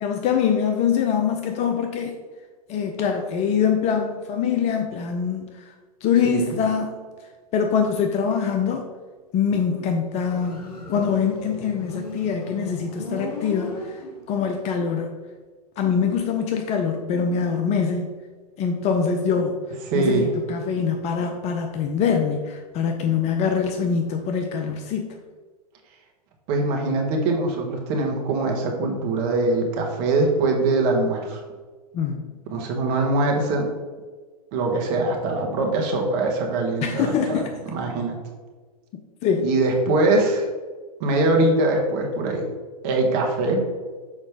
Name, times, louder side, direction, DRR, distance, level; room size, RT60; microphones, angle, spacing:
voice 1, 0.0-2.1 2.7-5.4 6.0-6.9 7.5-8.8 9.3-13.9 14.3-15.2 15.8-18.1 18.6-19.6 19.9-25.1 31.9-32.4 36.8-37.5 39.2-39.5, left 6 dB, 35° left, 4 dB, 0.6 m, -24 dB
voice 2, 6.2-6.6 19.9-20.3 26.5-31.4 32.5-33.7 34.5-38.2 39.4-40.5 41.0-42.5 42.8-43.6, right 2 dB, 45° right, 1 dB, 1.6 m, -22 dB
Motorcycle, 10.1-14.5, left 2 dB, 85° left, 2.0 m, -36 dB
6.4 x 4.9 x 3.6 m, 1.4 s
hypercardioid pair, 110°, 20 cm